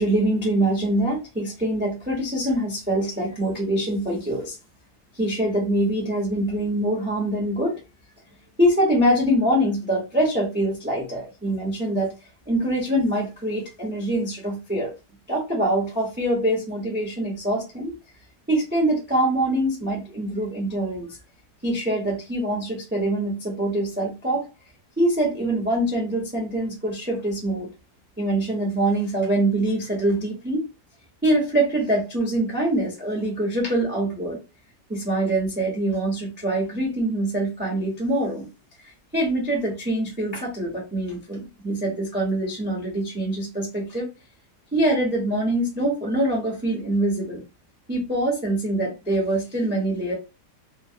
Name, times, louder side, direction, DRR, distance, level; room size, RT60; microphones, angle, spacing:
voice 1, 0.0-4.6 5.2-7.8 8.6-12.1 12.5-14.9 15.3-17.9 18.5-21.2 21.6-24.5 25.0-27.7 28.2-30.6 31.2-34.4 34.9-38.5 39.1-44.1 44.7-47.4 47.9-50.1, right 1 dB, 10° right, -1 dB, 0.6 m, -24 dB
3.0 x 2.1 x 2.7 m, 0.28 s
omnidirectional pair, 1.8 m